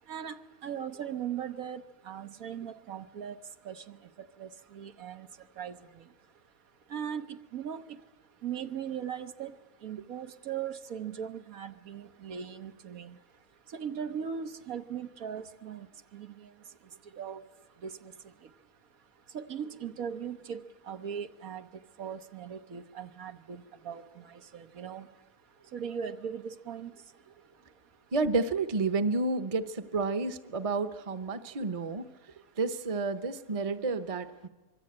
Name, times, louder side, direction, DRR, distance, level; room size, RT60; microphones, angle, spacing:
voice 1, 0.1-3.4 3.6-4.0 4.4-5.3 5.6-6.0 6.9-7.8 8.4-9.5 9.8-13.2 13.7-15.9 16.1-16.5 17.2-17.4 17.8-18.1 19.3-21.7 22.0-25.1 25.7-26.9, right 8 dB, 75° right, 8 dB, 1.5 m, -39 dB
voice 2, 28.1-32.1 32.6-34.5, right 3 dB, 30° right, 11 dB, 0.9 m, -30 dB
25.0 x 22.5 x 8.8 m, 1.2 s
omnidirectional pair, 1.5 m